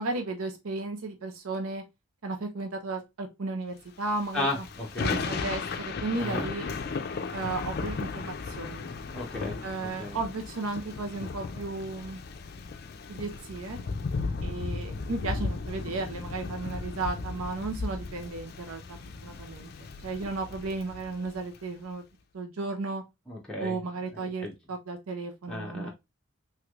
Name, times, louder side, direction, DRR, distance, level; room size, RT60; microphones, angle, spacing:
voice 1, 0.0-1.8 2.2-4.6 5.0-6.7 7.3-8.9 9.6-12.2 13.1-13.8 14.4-22.0 22.3-23.0 23.6-25.9, right 3 dB, 85° right, 0.7 m, -34 dB
Thunder / Rain, 4.1-21.6, left 4 dB, 45° left, 0.4 m, -36 dB
voice 2, 4.3-5.3 6.2-6.5 9.1-10.2 23.3-23.8 24.1-24.5 25.5-25.9, left 2 dB, 5° left, 0.6 m, -34 dB
3.2 x 3.2 x 2.3 m
head